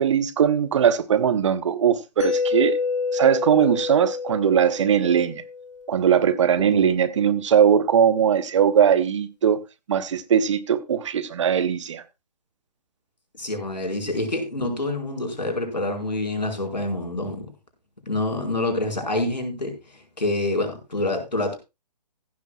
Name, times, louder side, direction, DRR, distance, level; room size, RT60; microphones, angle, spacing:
voice 1, 0.0-2.8 3.1-5.4 5.9-9.6 9.9-12.0, right 8 dB, 45° right, 0.9 m, -20 dB
Mallet percussion, 2.2-6.0, left 5 dB, 45° left, 2.2 m, -28 dB
voice 2, 13.4-17.5 18.1-21.6, left 2 dB, 80° left, 4.7 m, -27 dB
15.5 x 12.0 x 2.3 m
figure-of-eight pair, 135°, 21 cm